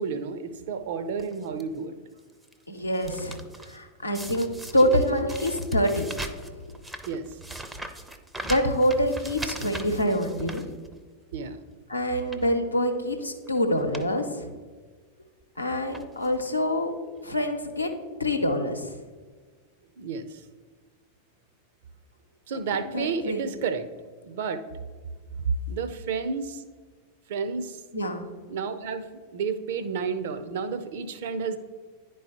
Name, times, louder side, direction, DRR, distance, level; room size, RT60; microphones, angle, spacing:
voice 1, 0.0-1.9 7.1-7.3 11.3-11.6 20.0-20.4 22.5-23.9 24.2-24.6 25.7-26.6 27.3-27.8 28.5-29.1 29.3-31.6, right 5 dB, 55° right, 10 dB, 0.6 m, -31 dB
sound 1, 1.2-1.6 2.2-2.5 2.8-3.8 4.1-11.2 11.6-11.8 12.2-12.6 13.4-13.5 13.7-14.1 14.4-14.5 15.4-15.6 15.9-16.4 17.2-17.3 17.5-17.6, right 2 dB, 5° right, 0.5 m, -40 dB
voice 2, 2.7-6.6 8.4-10.7 11.9-14.5 15.6-16.9 17.2-18.9 22.8-23.5 27.9-28.3, equal, 85° left, 4 dB, 0.7 m, -26 dB
10.5 x 4.6 x 3.0 m, 1.5 s
figure-of-eight pair, 90°, 0 cm